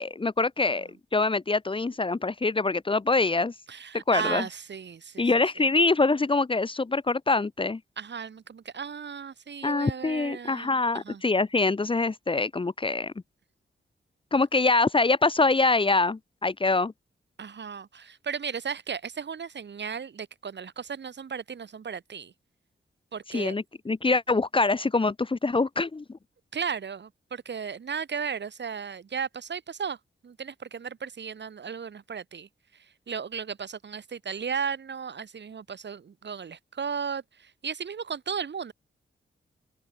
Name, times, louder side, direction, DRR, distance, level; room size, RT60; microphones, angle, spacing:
voice 1, 0.0-3.5 4.1-4.4 5.2-7.8 9.6-13.1 14.3-16.9 23.3-26.2, left 3 dB, 25° left, 1.4 m, -24 dB
voice 2, 3.7-5.3 5.6-5.7 8.0-11.2 17.4-22.3 23.1-23.6 26.5-30.0 30.2-32.5 33.1-38.7, right 6 dB, 60° right, 7.4 m, -35 dB
wide cardioid pair, 130°, 20 cm